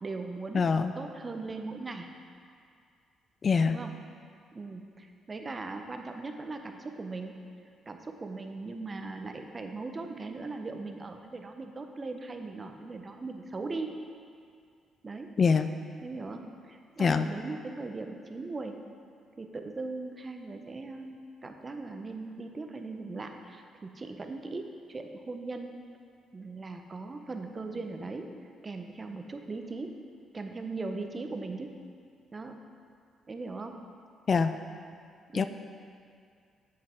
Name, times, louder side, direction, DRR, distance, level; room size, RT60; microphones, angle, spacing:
voice 1, 0.0-2.1 3.6-4.0 4.5-7.4 7.9-13.9 15.0-15.4 16.0-18.8 19.4-25.7 26.3-28.3 28.6-30.0 30.3-31.8 32.3-32.6 33.3-33.8 35.3-35.5, right 3 dB, 30° right, 5 dB, 0.6 m, -39 dB
voice 2, 0.5-0.9 3.4-3.8 15.4-15.7 17.0-17.3 34.3-34.5 35.3-35.5, left 5 dB, 45° left, 9 dB, 0.3 m, -24 dB
7.5 x 6.0 x 4.4 m, 2.2 s
cardioid pair, 90°, 0 cm